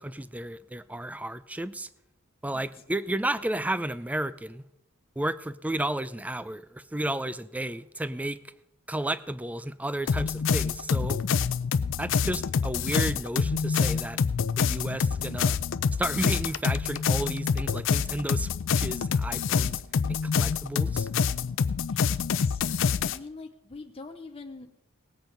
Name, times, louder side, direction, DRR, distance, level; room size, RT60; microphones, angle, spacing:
voice 1, 0.0-1.9 2.4-4.6 5.2-8.4 8.9-11.2 12.0-14.2 14.6-15.6 16.0-18.5 18.8-19.7 20.1-21.1, right 1 dB, 5° right, 16 dB, 0.4 m, -32 dB
sound 1, 10.1-23.2, left 6 dB, 65° left, 0.5 m, -26 dB
voice 2, 21.9-22.6 23.1-24.7, left 3 dB, 30° left, 4 dB, 0.7 m, -44 dB
18.5 x 8.0 x 5.2 m, 0.83 s
head